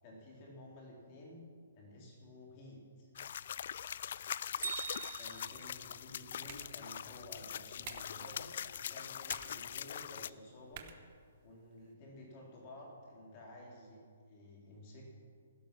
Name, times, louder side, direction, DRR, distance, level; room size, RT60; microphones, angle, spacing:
voice 1, 0.0-1.5 1.8-3.1 5.2-8.5 8.7-10.9 11.4-14.0 14.3-15.0, left 1 dB, 25° left, -2 dB, 3.7 m, -53 dB
sound 1, 3.2-10.3, left 9 dB, 45° left, 0.3 m, -42 dB
Bell, 4.6-6.7, right 7 dB, 75° right, 1.3 m, -44 dB
sound 2, 5.9-11.9, right 9 dB, 30° right, 1.0 m, -55 dB
16.0 x 12.5 x 6.1 m, 2.1 s
hypercardioid pair, 175°, 0 cm